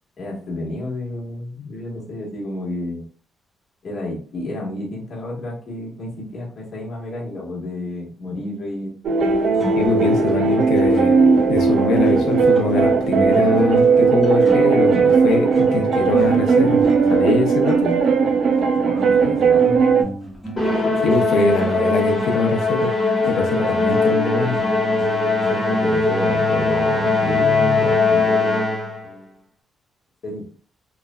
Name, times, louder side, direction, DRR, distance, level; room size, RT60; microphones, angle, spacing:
voice 1, 0.2-3.0 3.8-8.9 18.8-19.8 20.8-21.0 25.5-29.4 30.2-30.4, left 2 dB, 50° left, -4 dB, 1.2 m, -31 dB
sound 1, 9.0-20.0, right 5 dB, 65° right, 0.4 m, -17 dB
sound 2, 9.2-25.7, left 1 dB, ahead, 0.9 m, -31 dB
voice 2, 9.7-11.2 11.5-16.8 17.1-18.0 21.0-23.0 23.3-24.6, left 3 dB, 85° left, 2 dB, 0.5 m, -23 dB
Musical instrument, 20.6-29.0, left 3 dB, 25° left, 1.2 m, -20 dB
3.1 x 2.3 x 2.2 m, 0.42 s
cardioid pair, 115°, 0 cm